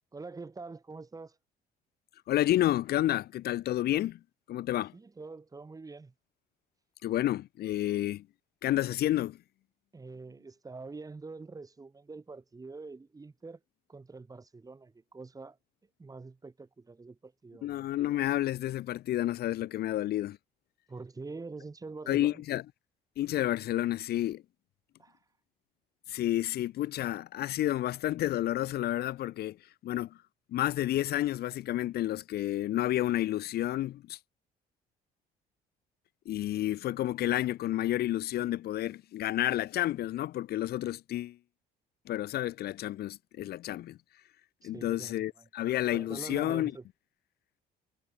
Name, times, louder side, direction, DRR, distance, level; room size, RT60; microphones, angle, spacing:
voice 1, 0.1-1.4 4.9-6.1 9.9-13.6 13.9-15.6 16.0-17.9 20.9-22.4 25.0-25.2 44.6-45.5 45.9-46.8, right 3 dB, 20° right, 7.8 m, -45 dB
voice 2, 2.3-4.2 4.5-4.9 7.0-8.3 8.6-9.4 17.6-20.4 22.1-22.6 23.2-24.4 26.1-30.2 30.5-34.2 36.3-41.4 42.1-44.0 44.6-46.7, left 14 dB, 70° left, 2.1 m, -30 dB
cardioid pair, 110°, 17 cm